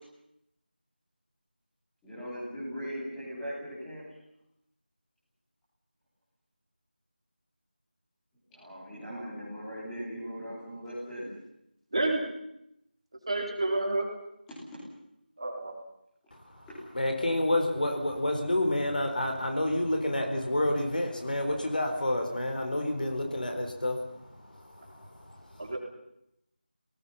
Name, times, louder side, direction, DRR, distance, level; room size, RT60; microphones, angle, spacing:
voice 1, 2.0-4.0 8.5-11.3 14.5-14.8 16.7-16.8, equal, 5° left, -12 dB, 3.8 m, -39 dB
voice 2, 13.3-14.1 15.4-15.7 25.6-25.8, right 2 dB, 35° right, 1 dB, 3.8 m, -29 dB
voice 3, 16.3-16.7 16.9-25.7, left 1 dB, 55° left, 4 dB, 4.5 m, -29 dB
29.5 x 19.0 x 5.7 m, 0.80 s
figure-of-eight pair, 180°, 5 cm